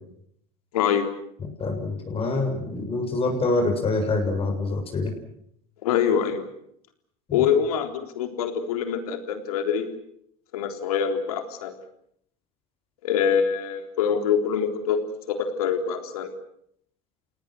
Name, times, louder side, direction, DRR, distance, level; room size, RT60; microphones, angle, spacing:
voice 1, 0.7-1.1 5.8-6.4 7.3-9.9 10.5-11.7 13.0-16.3, left 7 dB, 85° left, 7 dB, 3.6 m, -25 dB
voice 2, 1.4-5.1, left 2 dB, 30° left, 3 dB, 7.1 m, -26 dB
29.5 x 18.5 x 7.9 m, 0.71 s
supercardioid pair, 100°, 18 cm